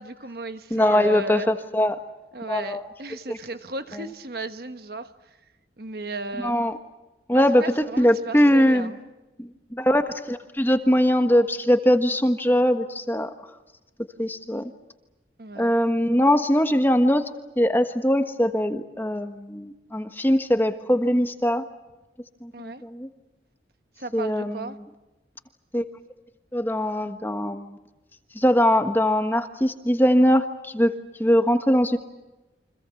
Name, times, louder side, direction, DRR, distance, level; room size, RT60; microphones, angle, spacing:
voice 1, 0.0-1.5 2.3-5.1 5.8-6.5 7.3-9.0 15.4-15.7 22.5-22.8 24.0-24.8, right 2 dB, 55° right, 1.3 m, -35 dB
voice 2, 0.7-2.0 2.5-2.8 3.3-3.4 4.0-4.1 6.4-6.7 7.3-8.9 9.4-13.3 14.2-14.7 15.6-17.2 17.6-21.6 22.4-23.1 24.1-24.6 25.7-25.8 26.5-27.8 28.3-32.0, equal, 10° left, 1.3 m, -21 dB
29.0 x 25.5 x 7.1 m
head